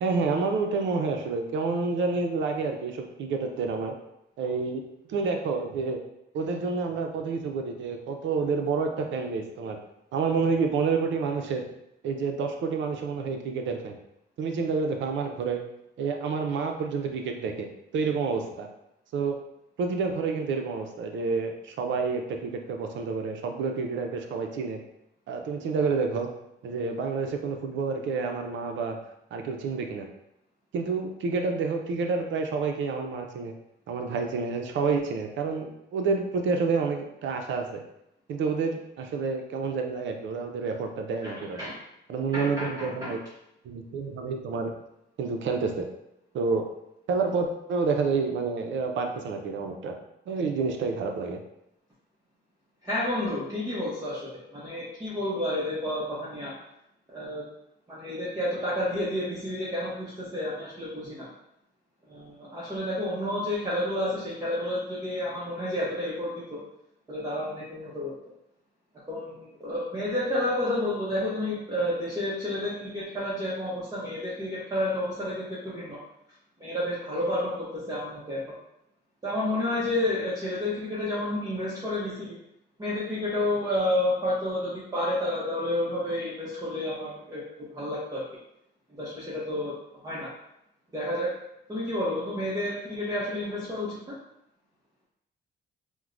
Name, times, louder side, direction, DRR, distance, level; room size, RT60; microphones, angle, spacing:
voice 1, 0.0-3.9 4.4-4.8 5.1-6.0 6.3-9.8 10.1-11.6 12.0-14.0 14.4-15.6 16.0-17.7 17.9-18.7 19.1-19.3 19.8-24.8 25.3-26.3 26.6-29.0 29.3-30.1 30.7-33.5 33.9-37.6 38.3-41.6 42.1-43.2 43.6-44.7 45.2-45.9 46.3-46.6 47.1-49.9 50.3-51.4, right 4 dB, 70° right, 4 dB, 0.5 m, -29 dB
voice 2, 41.2-41.8 42.3-43.1 52.8-56.5 57.1-57.4 57.9-61.3 62.1-66.6 67.1-68.1 69.1-76.0 76.6-78.4 79.2-82.4 82.8-87.4 87.7-88.2 88.9-89.7 90.0-90.3 90.9-91.3 91.7-94.0, left 1 dB, 20° right, -7 dB, 0.8 m, -30 dB
4.4 x 2.1 x 2.5 m, 0.83 s
cardioid pair, 90°, 20 cm